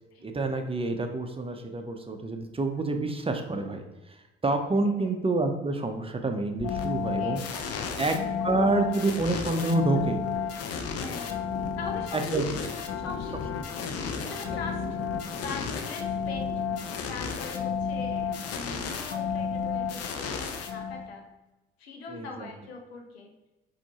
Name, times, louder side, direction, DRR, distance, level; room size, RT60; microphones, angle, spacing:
voice 1, 0.2-4.2 4.4-7.4 8.0-8.2 8.4-10.2 12.3-12.4 14.5-14.6 22.1-22.5, right 2 dB, 20° right, 5 dB, 0.7 m, -28 dB
sound 1, 6.6-21.2, left 6 dB, 50° left, 0.7 m, -32 dB
voice 2, 7.1-8.3 11.0-11.4 11.8-12.5 12.9-13.5 14.1-15.0 15.4-16.6 17.1-21.2 21.8-23.3, left 4 dB, 85° left, 3 dB, 0.7 m, -41 dB
4.3 x 2.8 x 4.2 m, 1.1 s
hypercardioid pair, 50°, 30 cm